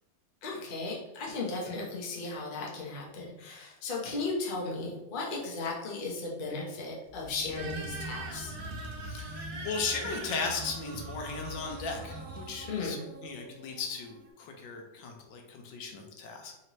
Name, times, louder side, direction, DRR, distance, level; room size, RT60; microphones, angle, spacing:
voice 1, 0.4-8.5 12.6-13.0, left 3 dB, 45° left, -3 dB, 0.6 m, -36 dB
sound 1, 7.1-13.0, equal, 80° right, 1.3 m, -43 dB
sound 2, 7.6-14.3, right 3 dB, 60° right, 1.1 m, -44 dB
voice 2, 9.1-13.0 13.2-16.5, left 4 dB, 80° left, 2 dB, 1.4 m, -37 dB
4.2 x 2.8 x 3.0 m, 0.92 s
omnidirectional pair, 2.0 m